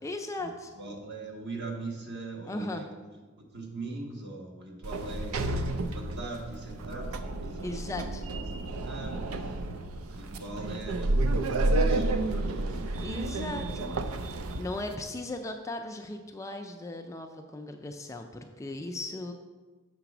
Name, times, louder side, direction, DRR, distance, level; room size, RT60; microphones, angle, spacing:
voice 1, 0.0-0.7 2.4-2.9 7.6-8.2 13.0-19.3, left 2 dB, 15° left, 4 dB, 0.3 m, -37 dB
voice 2, 0.7-2.9 3.4-5.5 5.8-7.8 8.3-9.7 10.0-12.9 13.3-13.5, right 2 dB, 55° right, 0 dB, 1.3 m, -41 dB
Sliding door, 4.8-15.0, right 2 dB, 75° right, 0.5 m, -31 dB
6.7 x 4.0 x 6.0 m, 1.3 s
head